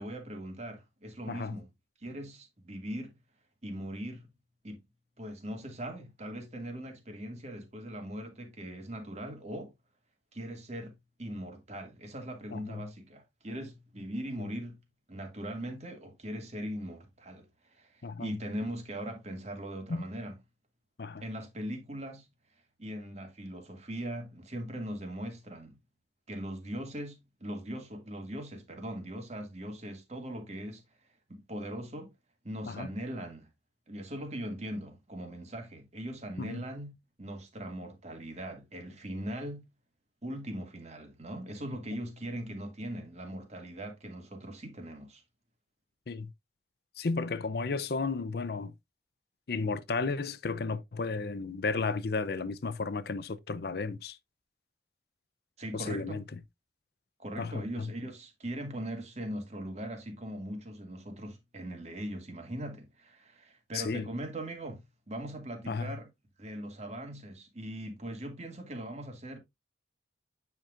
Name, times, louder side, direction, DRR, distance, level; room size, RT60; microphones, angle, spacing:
voice 1, 0.0-1.7 2.0-3.2 3.6-4.2 4.6-4.8 5.2-9.7 10.3-10.9 11.2-14.8 15.1-20.4 21.2-22.3 22.8-25.8 26.3-30.8 31.3-32.1 32.4-33.5 33.9-36.9 37.2-39.6 40.2-45.2 55.6-56.3 57.2-66.1 66.4-69.4, right 1 dB, 40° right, 2.0 m, -40 dB
voice 2, 12.5-12.8 18.0-18.3 19.9-20.1 21.0-21.2 32.7-32.9 36.4-36.6 46.1-46.3 47.0-48.7 49.5-54.2 55.7-56.4 57.4-57.9 63.7-64.1 65.7-65.9, left 4 dB, 60° left, 0.5 m, -33 dB
9.0 x 5.9 x 2.4 m
head